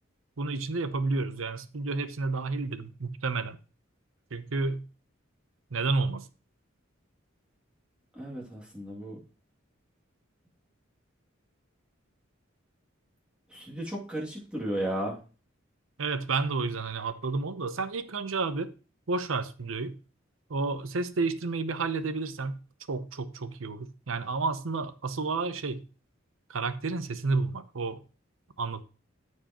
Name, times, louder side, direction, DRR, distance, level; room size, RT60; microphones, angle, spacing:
voice 1, 0.4-3.6 4.3-4.8 5.7-6.3 16.0-18.7 19.1-19.9 20.5-22.6 22.9-25.8 26.5-28.0 28.6-28.8, right 3 dB, 80° right, 0.8 m, -31 dB
voice 2, 8.1-9.2 13.5-15.2, right 1 dB, 5° right, 2.4 m, -34 dB
14.0 x 4.7 x 3.0 m
head